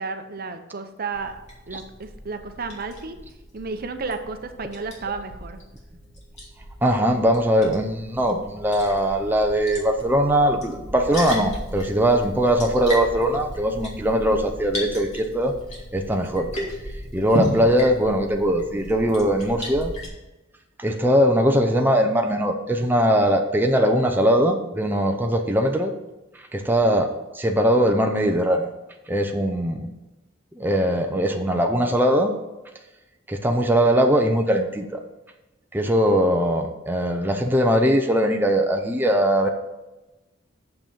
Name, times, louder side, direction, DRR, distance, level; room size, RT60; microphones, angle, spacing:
voice 1, 0.0-3.2 3.5-5.6, right 4 dB, 50° right, 8 dB, 0.8 m, -32 dB
Liquid, 1.1-20.1, equal, 35° left, 2.6 m, -35 dB
voice 2, 6.8-15.5 15.9-16.5 17.1-19.9 20.8-25.9 26.5-27.1 27.3-28.7 29.1-29.9 30.6-32.3 33.3-35.0 35.7-39.5, equal, 10° right, 3 dB, 0.6 m, -21 dB
7.1 x 5.9 x 6.8 m, 1.0 s
head